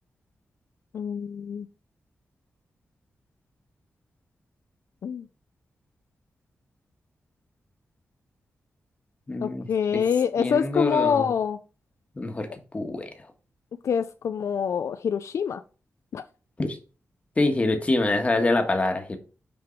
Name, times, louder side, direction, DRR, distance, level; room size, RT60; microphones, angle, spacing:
voice 1, 0.9-1.7 5.0-5.3 9.4-11.6 13.8-15.6 16.1-16.2, left 7 dB, 75° left, 10 dB, 0.4 m, -26 dB
voice 2, 9.3-9.7 9.9-10.0 10.4-11.3 12.1-13.3 16.6-16.8 17.4-19.2, left 2 dB, 25° left, 5 dB, 1.3 m, -25 dB
6.2 x 4.6 x 4.4 m, 0.36 s
wide cardioid pair, 115°, 5 cm